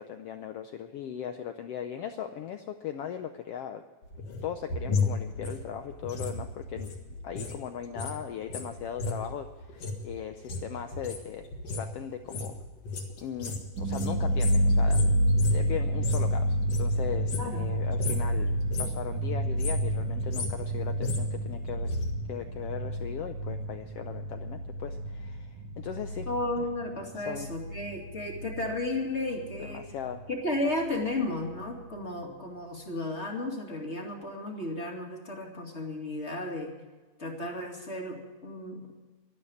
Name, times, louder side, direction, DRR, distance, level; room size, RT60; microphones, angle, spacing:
voice 1, 0.0-3.8 4.4-6.9 7.2-11.5 11.7-12.5 13.2-15.0 15.5-22.0 22.3-26.3 26.6-26.7 27.3-27.5 29.6-30.2, left 9 dB, 80° left, 7 dB, 1.3 m, -38 dB
sound 1, 4.0-7.6 7.8-16.3 16.6-17.7 17.9-18.3 18.6-19.1 19.4-22.1 22.4-22.5, left 3 dB, 55° left, 2.8 m, -34 dB
sound 2, 13.8-28.9 29.1-30.2 30.6-30.7 31.0-31.7, equal, 75° right, 2.9 m, -29 dB
voice 2, 26.3-29.9 30.3-36.7 37.2-38.9, left 2 dB, 25° left, 1 dB, 2.1 m, -33 dB
12.0 x 12.0 x 8.5 m, 1.3 s
omnidirectional pair, 3.6 m